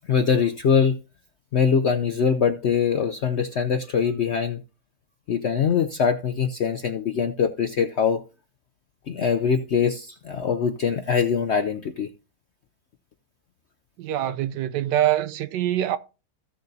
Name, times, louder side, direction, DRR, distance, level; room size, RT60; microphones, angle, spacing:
voice 1, 0.1-1.0 1.5-4.6 5.3-8.2 9.1-12.1, left 6 dB, 65° left, 0.6 m, -23 dB
voice 2, 14.0-16.0, right 12 dB, 85° right, 1.3 m, -24 dB
15.5 x 6.6 x 2.7 m
omnidirectional pair, 1.8 m